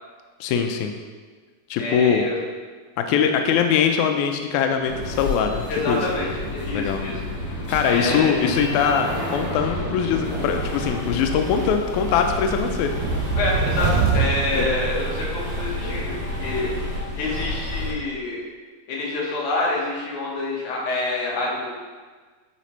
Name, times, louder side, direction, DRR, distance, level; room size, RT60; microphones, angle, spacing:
voice 1, 0.4-0.9 1.7-2.3 3.0-6.0 6.7-7.0 7.7-12.9 14.6-14.7, left 7 dB, 85° left, 5 dB, 1.7 m, -22 dB
voice 2, 1.8-2.4 5.7-7.2 7.9-8.6 13.3-16.7 17.2-18.4 18.9-21.7, left 2 dB, 65° left, -4 dB, 2.6 m, -27 dB
sound 1, 4.8-17.9, left 1 dB, 35° left, 1.7 m, -29 dB
sound 2, 12.9-15.6, right 6 dB, 85° right, 1.6 m, -24 dB
9.8 x 4.1 x 3.1 m, 1.5 s
omnidirectional pair, 3.9 m